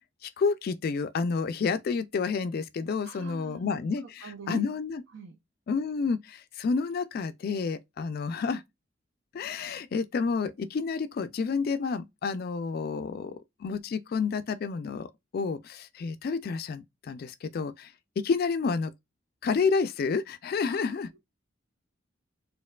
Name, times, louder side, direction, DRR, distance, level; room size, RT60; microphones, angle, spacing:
voice 1, 0.2-5.0 5.7-8.6 9.3-18.9 19.4-21.1, left 5 dB, 50° left, 0.3 m, -30 dB
voice 2, 2.9-3.8 4.2-4.6 5.1-5.4 20.7-21.0, right 3 dB, 65° right, 0.6 m, -43 dB
4.3 x 2.6 x 2.3 m
head